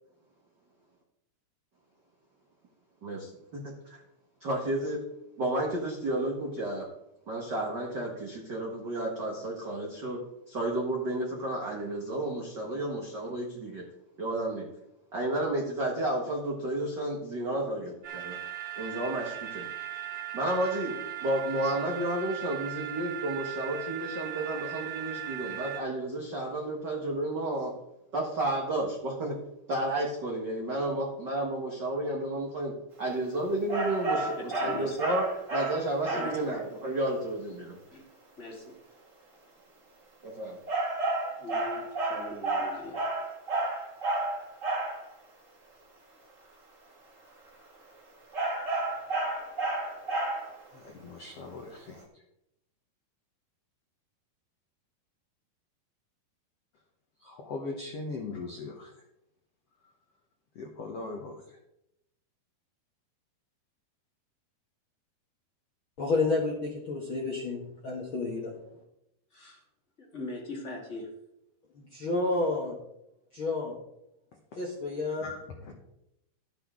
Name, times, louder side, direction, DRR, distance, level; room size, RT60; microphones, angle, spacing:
voice 1, 3.0-4.0 4.4-5.0 5.4-6.9 7.3-10.2 10.5-13.8 14.2-14.7 15.1-18.4 18.7-19.6 20.3-27.7 28.1-29.4 29.7-37.8 40.2-40.6, right 1 dB, 75° right, -2 dB, 0.9 m, -32 dB
sound 1, 18.0-25.8, right 14 dB, 55° right, 3.0 m, -38 dB
sound 2, 33.7-36.5 40.7-45.0 48.3-50.6, right 2 dB, 30° right, 1.5 m, -31 dB
voice 2, 34.5-35.0 36.1-36.3 37.9-38.1 38.4-38.8 41.4-43.3 69.3-69.6 70.0-71.1, left 2 dB, 30° left, -1 dB, 1.5 m, -41 dB
voice 3, 50.7-52.0 57.2-58.9 60.5-61.3 75.2-75.7, left 3 dB, 70° left, 1 dB, 1.4 m, -39 dB
voice 4, 66.0-68.5 71.9-72.8 73.3-73.7 74.6-75.3, left 3 dB, 55° left, -3 dB, 1.4 m, -30 dB
12.0 x 9.9 x 3.7 m, 0.85 s
omnidirectional pair, 4.6 m